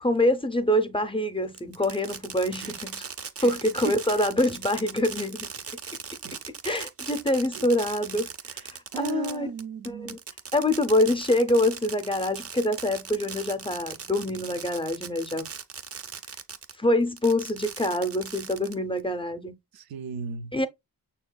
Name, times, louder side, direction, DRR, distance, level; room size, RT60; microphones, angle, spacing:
voice 1, 0.0-3.0 3.4-5.5 6.6-8.3 8.6-9.5 9.9-10.2 10.5-15.5 16.8-19.5 20.5-20.7, left 1 dB, 15° left, 0.5 m, -25 dB
Fireworks, 1.5-16.8 17.2-19.0, right 6 dB, 40° right, 0.5 m, -39 dB
voice 2, 8.9-10.2 19.7-20.5, right 8 dB, 85° right, 0.5 m, -35 dB
6.1 x 2.8 x 2.2 m
cardioid pair, 75°, 36 cm